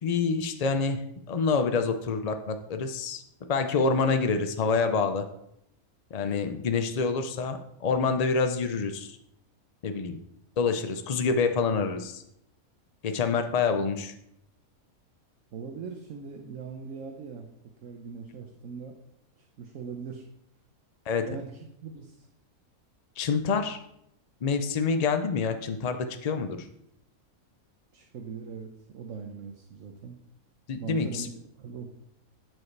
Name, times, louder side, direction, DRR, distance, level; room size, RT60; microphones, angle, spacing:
voice 1, 0.0-3.2 3.5-5.2 6.1-9.2 9.8-10.2 10.6-12.2 13.0-14.1 21.1-21.3 23.2-23.8 24.4-26.6 30.7-31.3, left 5 dB, 75° left, 7 dB, 0.3 m, -27 dB
voice 2, 15.5-17.5 17.8-19.0 19.4-20.2 21.2-22.3 27.9-30.2 30.8-31.3 31.6-31.9, right 5 dB, 65° right, 3 dB, 1.1 m, -40 dB
12.5 x 4.8 x 3.3 m, 0.78 s
omnidirectional pair, 1.5 m